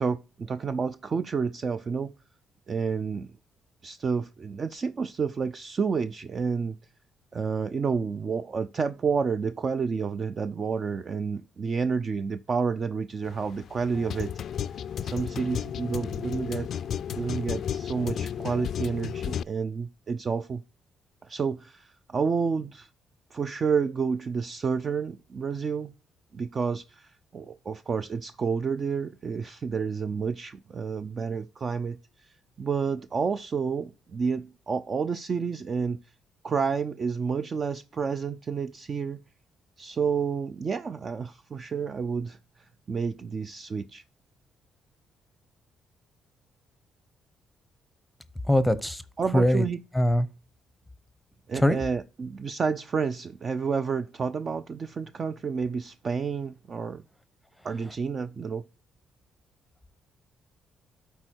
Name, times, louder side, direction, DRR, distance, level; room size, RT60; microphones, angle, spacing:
voice 1, 0.0-2.1 2.7-3.3 3.8-6.8 7.3-14.3 15.0-16.8 17.1-20.6 21.2-22.9 23.3-25.9 26.3-36.0 36.4-39.2 39.8-42.4 42.9-44.0 49.2-49.8 51.5-57.0 57.6-58.6, right 5 dB, 45° right, 0.4 m, -30 dB
sound 1, 13.2-19.4, left 9 dB, 65° left, 0.3 m, -33 dB
voice 2, 48.5-49.0 49.3-49.6 49.9-50.3 51.5-51.8, equal, 5° left, 0.8 m, -22 dB
12.5 x 4.5 x 4.4 m
cardioid pair, 90°, 0 cm